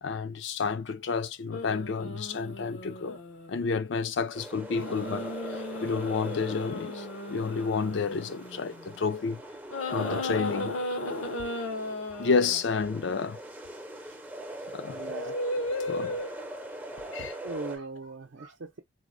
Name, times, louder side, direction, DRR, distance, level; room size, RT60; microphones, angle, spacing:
voice 1, 0.0-3.2 3.5-9.4 9.9-10.7 12.2-13.4 14.7-15.0 15.9-16.2 17.1-17.3, left 5 dB, 60° left, 0.4 m, -30 dB
sound 1, 1.5-3.7 4.7-9.0 9.7-12.6 15.0-16.5 17.8-18.0, left 2 dB, 80° left, 0.8 m, -35 dB
sound 2, 4.3-17.8, right 1 dB, 10° right, 0.5 m, -42 dB
voice 2, 14.9-15.3 17.4-18.8, right 3 dB, 65° right, 0.5 m, -39 dB
3.8 x 2.0 x 2.5 m
head